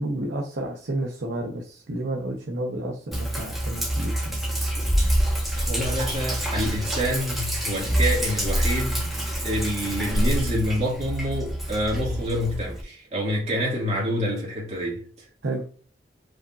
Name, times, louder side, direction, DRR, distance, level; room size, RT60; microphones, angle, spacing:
voice 1, 0.0-4.4 15.4-15.6, right 1 dB, 85° right, 0.7 m, -31 dB
Sink (filling or washing), 3.1-12.8, right 1 dB, ahead, 1.1 m, -26 dB
voice 2, 5.5-9.1 9.4-15.3, equal, 40° right, 1.9 m, -27 dB
5.0 x 3.9 x 2.4 m
head